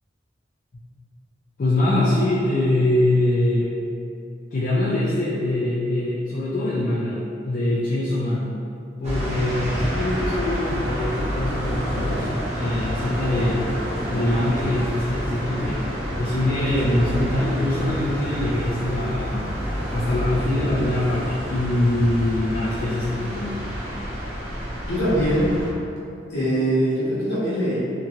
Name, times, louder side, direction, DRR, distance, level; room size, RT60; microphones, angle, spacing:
voice 1, 1.6-3.7 4.5-8.5 9.0-13.7 14.1-15.8 16.2-19.5 19.9-23.7, left 1 dB, 45° left, -8 dB, 0.4 m, -23 dB
sound 1, 9.0-25.7, equal, 35° right, 0.8 m, -28 dB
voice 2, 24.9-25.5 26.3-27.8, equal, 65° left, -10 dB, 1.0 m, -22 dB
2.8 x 2.7 x 2.3 m, 2.5 s
head